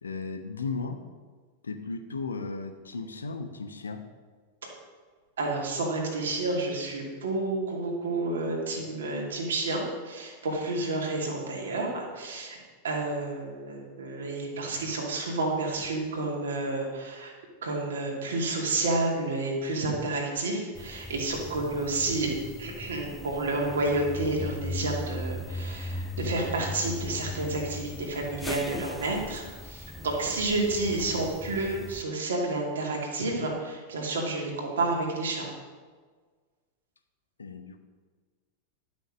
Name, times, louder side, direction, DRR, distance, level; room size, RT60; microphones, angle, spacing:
voice 1, 0.0-1.0 1.6-4.0 37.4-37.8, left 4 dB, 75° left, 7 dB, 0.9 m, -35 dB
voice 2, 5.4-12.6 12.8-17.3 17.6-22.3 22.6-35.5, right 2 dB, 65° right, -1 dB, 2.5 m, -30 dB
sound 1, 20.8-32.0, left 2 dB, 10° left, 0.5 m, -38 dB
11.5 x 6.3 x 6.2 m, 1.5 s
figure-of-eight pair, 90°, 0 cm